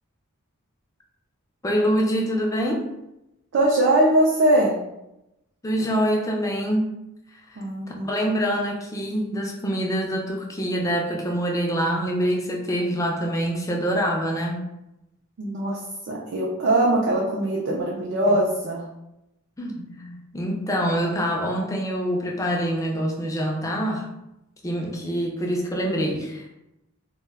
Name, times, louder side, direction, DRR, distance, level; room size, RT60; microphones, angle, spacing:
voice 1, 1.6-2.9 5.6-6.9 7.5-7.6 8.1-14.7 18.3-18.4 19.6-24.1 24.6-26.5, equal, 15° left, 0 dB, 0.3 m, -25 dB
voice 2, 3.5-4.7 7.6-8.1 15.4-15.8 16.1-18.9, right 1 dB, 55° right, -3 dB, 0.4 m, -21 dB
2.2 x 2.1 x 3.4 m, 0.89 s
head